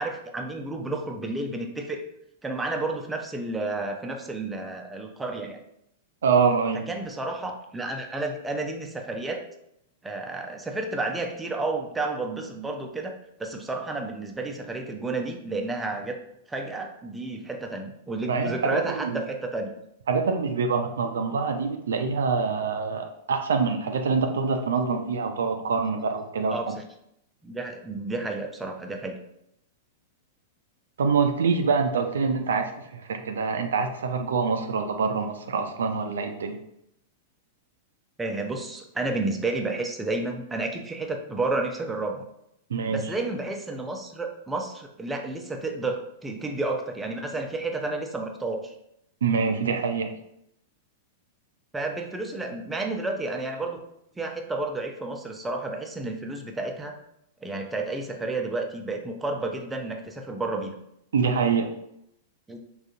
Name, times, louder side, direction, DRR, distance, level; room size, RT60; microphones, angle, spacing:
voice 1, 0.0-2.0 2.4-5.6 6.9-9.4 10.0-13.1 13.4-16.2 16.5-19.7 26.5-26.8 27.4-29.2 38.2-42.2 42.9-48.7 51.7-53.8 54.2-57.0 57.4-60.7 62.5-62.6, right 2 dB, 10° right, 2 dB, 0.5 m, -31 dB
voice 2, 6.2-6.8 18.3-19.2 20.1-26.7 31.0-36.6 42.7-43.0 49.2-50.1 61.1-61.7, right 5 dB, 70° right, 5 dB, 0.3 m, -25 dB
3.6 x 2.4 x 2.7 m, 0.77 s
figure-of-eight pair, 100°, 0 cm